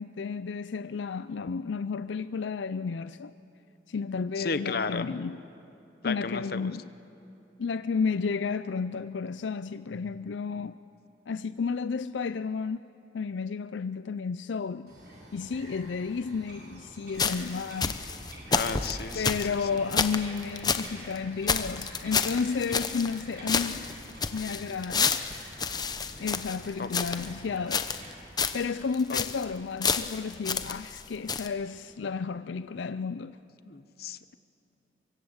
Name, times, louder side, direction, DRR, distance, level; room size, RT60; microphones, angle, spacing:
voice 1, 0.0-3.3 3.9-5.4 6.0-6.8 7.6-10.8 11.3-12.9 13.1-14.9 15.3-18.0 19.1-23.9 24.3-25.2 26.2-27.9 28.5-33.4, left 5 dB, 85° left, 0.5 m, -32 dB
voice 2, 4.4-5.1 6.0-6.7 18.5-19.4 26.8-26.9 29.1-29.2 33.7-34.3, left 4 dB, 55° left, 0.9 m, -33 dB
Bird vocalization bird call bird song, 14.9-28.1, right 1 dB, 65° right, 7.4 m, -48 dB
sound 1, 17.2-20.9 21.2-21.3 21.5-23.2 23.5-27.3 27.7-28.1 28.4-28.6 28.9-29.4 29.8-31.0 31.3-31.5, left 5 dB, 20° left, 0.9 m, -29 dB
24.0 x 23.5 x 8.0 m
head